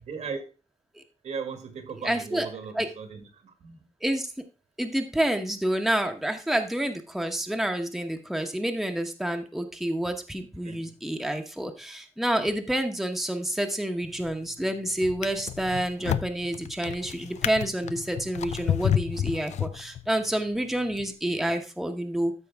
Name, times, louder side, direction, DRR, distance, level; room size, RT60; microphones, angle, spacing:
voice 1, 0.1-0.4 1.2-3.3 3.6-3.8 10.6-10.8 21.3-21.5, right 5 dB, 80° right, 7 dB, 1.8 m, -37 dB
voice 2, 2.0-2.5 2.7-2.9 4.0-4.3 4.8-22.3, right 1 dB, ahead, 4 dB, 0.9 m, -28 dB
Drawer open or close, 14.0-14.5 15.0-20.2 20.9-21.1, left 9 dB, 90° left, 0.4 m, -30 dB
13.0 x 5.1 x 3.4 m, 0.32 s
wide cardioid pair, 150°, 12 cm